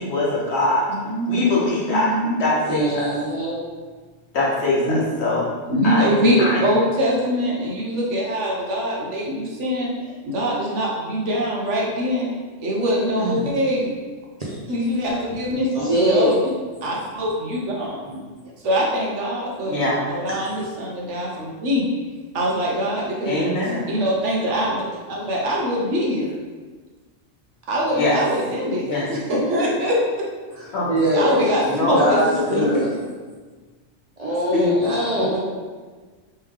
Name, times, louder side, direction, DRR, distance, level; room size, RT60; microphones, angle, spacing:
voice 1, 0.0-0.8 1.2-2.1 2.4-3.1 4.3-5.4 5.8-6.8 13.2-13.5 19.7-20.0 23.2-23.9 27.9-28.2 28.8-29.0 30.7-30.9 31.6-32.1 32.5-32.7 34.5-34.8, left 2 dB, 60° left, -6 dB, 1.3 m, -22 dB
voice 2, 1.0-1.6 1.9-2.4 4.9-5.0 5.7-12.3 12.6-13.9 14.7-16.5 16.8-18.0 18.6-21.8 22.3-23.5 23.9-26.3 27.7-30.3 31.1-32.6 34.8-35.1, equal, 70° right, -3 dB, 1.2 m, -23 dB
voice 3, 2.7-3.6 15.7-16.3 18.1-18.2 20.3-20.4 30.6-31.4 32.0-32.9 34.2-35.4, equal, 40° right, -6 dB, 0.7 m, -22 dB
3.4 x 3.3 x 3.4 m, 1.4 s
omnidirectional pair, 1.3 m